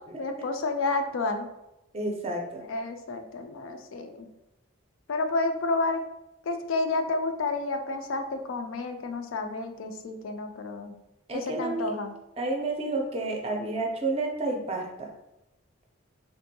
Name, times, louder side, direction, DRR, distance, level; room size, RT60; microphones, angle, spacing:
voice 1, 0.2-1.5 2.7-4.3 5.1-6.0 6.4-10.9 11.3-12.1, left 3 dB, 70° left, 6 dB, 0.4 m, -30 dB
voice 2, 1.9-2.6 11.3-11.9 12.4-15.1, right 2 dB, 30° right, 1 dB, 0.5 m, -30 dB
3.5 x 2.6 x 2.6 m, 0.92 s
head